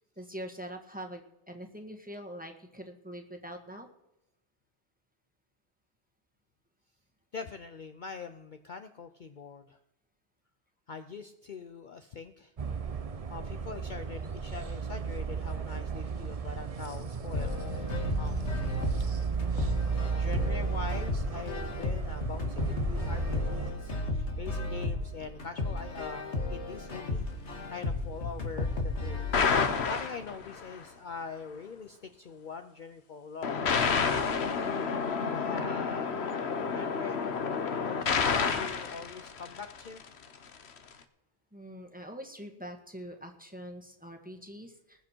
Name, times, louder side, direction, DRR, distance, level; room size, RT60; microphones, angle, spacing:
voice 1, 0.2-3.9 41.5-45.0, equal, 10° right, 4 dB, 1.7 m, -44 dB
voice 2, 7.3-9.8 10.9-12.5 13.3-18.7 20.0-33.6 35.0-37.2 37.7-40.0, left 5 dB, 50° left, 8 dB, 0.8 m, -43 dB
sound 1, 12.6-23.7, right 5 dB, 35° right, 0.7 m, -34 dB
sound 2, 17.3-29.3, left 2 dB, 90° left, 2.2 m, -34 dB
sound 3, 29.3-30.7 33.4-40.0, left 5 dB, 70° left, 1.3 m, -29 dB
20.5 x 7.6 x 4.5 m, 0.91 s
omnidirectional pair, 1.2 m